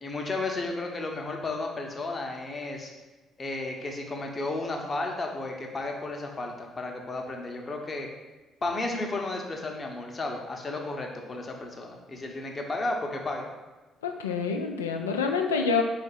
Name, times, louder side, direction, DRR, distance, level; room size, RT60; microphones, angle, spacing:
voice 1, 0.0-2.9 3.4-8.1 8.6-13.5, left 2 dB, 35° left, 2 dB, 0.8 m, -33 dB
voice 2, 14.0-15.8, left 5 dB, 80° left, 4 dB, 0.3 m, -27 dB
4.3 x 2.5 x 4.7 m, 1.2 s
figure-of-eight pair, 45°, 0 cm